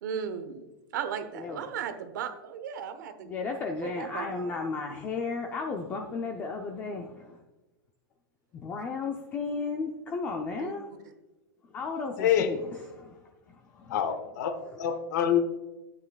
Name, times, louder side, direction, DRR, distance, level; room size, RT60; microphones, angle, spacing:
voice 1, 0.0-3.4 3.8-4.6 10.5-10.7, right 7 dB, 55° right, 9 dB, 1.0 m, -36 dB
voice 2, 3.2-7.4 8.5-10.9 11.7-13.2 13.5-14.0 14.7-14.8, left 4 dB, 15° left, 2 dB, 0.4 m, -34 dB
voice 3, 12.2-12.5 13.9-15.4, left 9 dB, 50° left, 10 dB, 1.0 m, -26 dB
13.0 x 8.9 x 2.3 m, 1.1 s
supercardioid pair, 170°, 12 cm